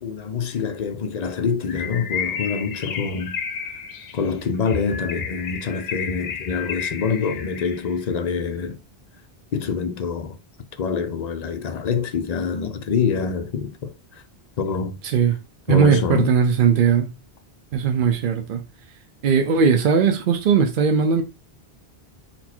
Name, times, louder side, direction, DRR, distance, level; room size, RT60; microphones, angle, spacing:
voice 1, 0.0-3.4 3.7-3.8 4.1-8.8 9.5-10.4 10.8-14.2 14.6-15.0 15.7-16.3, left 6 dB, 50° left, 0.6 m, -25 dB
Bird, 1.7-8.0, left 7 dB, 75° left, 0.9 m, -32 dB
voice 2, 15.0-15.4 15.7-17.1 17.7-18.6 19.2-21.2, right 6 dB, 60° right, 0.7 m, -18 dB
4.2 x 2.2 x 4.3 m
omnidirectional pair, 1.0 m